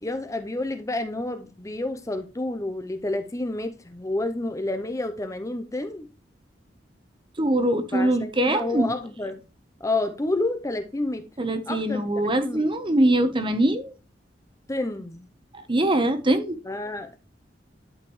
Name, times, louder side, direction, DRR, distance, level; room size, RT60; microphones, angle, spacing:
voice 1, 0.0-6.1 7.9-9.4 9.8-11.3 11.7-12.0 12.4-12.7 14.7-15.3 16.7-17.2, left 2 dB, 20° left, 0.7 m, -29 dB
voice 2, 7.4-8.9 11.4-13.9 15.7-16.6, right 1 dB, 30° right, 1.1 m, -22 dB
11.5 x 5.0 x 3.2 m
head